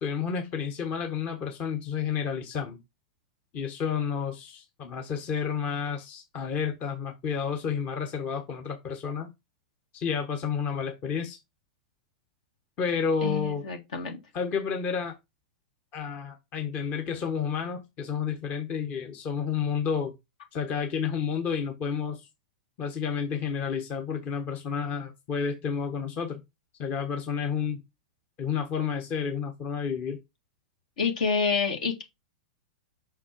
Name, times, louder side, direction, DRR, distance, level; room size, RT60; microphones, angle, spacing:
voice 1, 0.0-2.8 3.5-9.3 9.9-11.4 12.8-13.6 14.3-15.1 15.9-20.1 20.5-22.3 22.8-26.4 26.8-27.8 28.4-30.2, left 6 dB, 40° left, 1.3 m, -30 dB
voice 2, 13.2-14.2 31.0-32.0, left 5 dB, 65° left, 2.0 m, -28 dB
5.8 x 4.2 x 4.5 m
hypercardioid pair, 105°, 4 cm